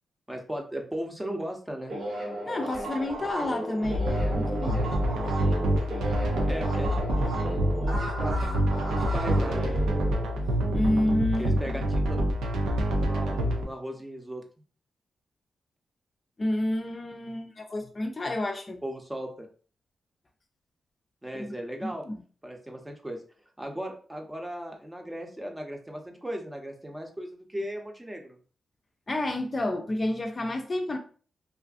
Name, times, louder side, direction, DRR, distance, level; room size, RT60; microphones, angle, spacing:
voice 1, 0.3-1.9 6.5-8.4 8.9-9.7 11.4-12.3 13.0-14.4 18.8-19.5 21.2-22.0 22.4-23.2 23.6-28.4, equal, 15° right, 0.7 m, -37 dB
Crowd Moving, 1.9-11.1, right 1 dB, 65° right, 1.1 m, -35 dB
voice 2, 2.5-4.8 10.7-11.8 16.4-18.8 21.3-21.5 21.8-22.2 29.1-31.0, left 1 dB, 40° left, 0.5 m, -30 dB
sound 1, 3.8-13.6, equal, 90° right, 0.4 m, -26 dB
2.4 x 2.4 x 2.4 m
supercardioid pair, 45°, 0 cm